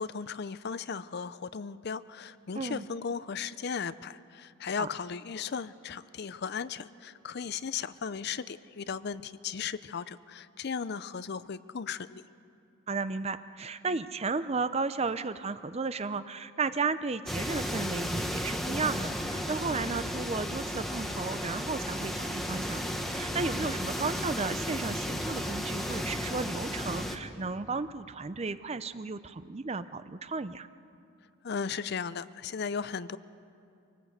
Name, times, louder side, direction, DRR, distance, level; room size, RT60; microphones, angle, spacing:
voice 1, 0.0-12.2 31.4-33.2, left 6 dB, 50° left, 15 dB, 0.5 m, -36 dB
voice 2, 2.5-2.9 4.8-4.9 12.9-22.8 23.1-30.7, right 4 dB, 30° right, 13 dB, 0.5 m, -34 dB
sound 1, 17.3-27.2, equal, ahead, 1.2 m, -34 dB
24.5 x 18.5 x 8.1 m, 2.6 s
head